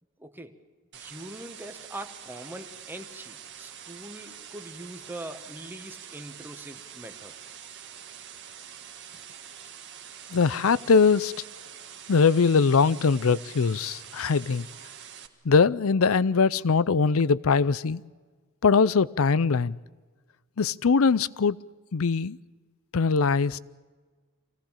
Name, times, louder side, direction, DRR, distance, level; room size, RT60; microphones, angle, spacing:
voice 1, 0.2-0.5 0.9-7.3, right 1 dB, 10° right, 1.2 m, -42 dB
sound 1, 0.9-15.3, right 9 dB, 55° right, 1.6 m, -45 dB
voice 2, 10.3-11.3 12.1-14.7 15.4-18.0 18.6-19.8 20.6-21.6 21.9-22.4 22.9-23.6, left 5 dB, 70° left, 0.5 m, -22 dB
25.0 x 17.5 x 7.2 m
head